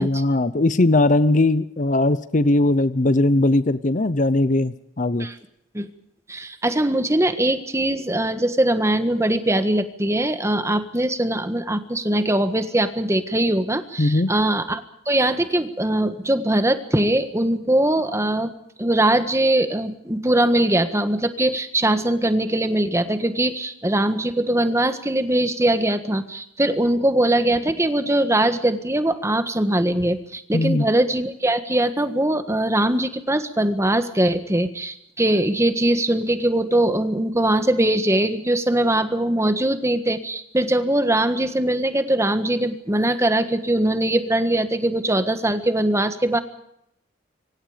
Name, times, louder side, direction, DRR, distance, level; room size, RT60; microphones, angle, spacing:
voice 1, 0.0-5.3 14.0-14.3 30.5-30.8, left 2 dB, 40° left, 15 dB, 0.8 m, -19 dB
voice 2, 6.3-18.5 18.8-46.4, right 1 dB, 15° right, 9 dB, 1.6 m, -21 dB
25.5 x 25.0 x 5.1 m, 0.78 s
head